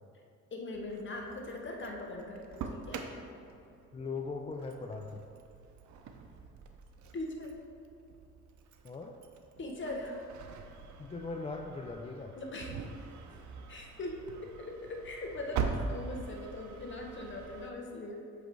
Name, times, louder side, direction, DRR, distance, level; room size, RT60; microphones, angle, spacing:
voice 1, 0.5-3.0 7.1-7.5 9.6-10.2 12.4-12.9 13.3-13.4 13.7-14.3 14.6-18.2, left 2 dB, 40° left, 0 dB, 1.0 m, -40 dB
Engine starting, 0.7-17.7, right 5 dB, 70° right, 0.6 m, -43 dB
voice 2, 3.9-5.2 8.8-9.1 11.0-12.4, left 4 dB, 20° left, 2 dB, 0.3 m, -39 dB
7.5 x 3.2 x 4.5 m, 2.6 s
cardioid pair, 90°, 30 cm